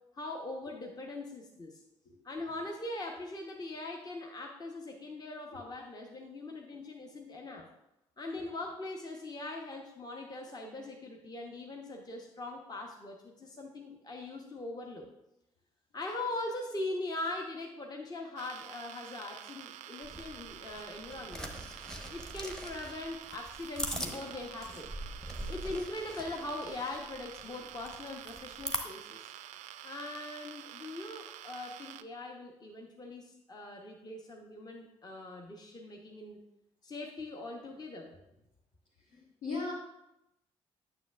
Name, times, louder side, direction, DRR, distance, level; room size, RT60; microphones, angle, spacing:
voice 1, 0.1-1.8 2.2-7.7 8.2-15.1 15.9-21.5 22.1-24.9 25.5-29.3 29.8-36.4 36.8-38.1, left 2 dB, 25° left, 1 dB, 0.9 m, -41 dB
sound 1, 18.4-32.0, right 12 dB, 50° right, 0.4 m, -48 dB
sound 2, 20.0-28.8, equal, 5° left, 1.0 m, -42 dB
voice 2, 39.1-39.7, left 3 dB, 65° left, -7 dB, 1.4 m, -38 dB
9.2 x 6.7 x 2.4 m, 0.87 s
figure-of-eight pair, 45°, 15 cm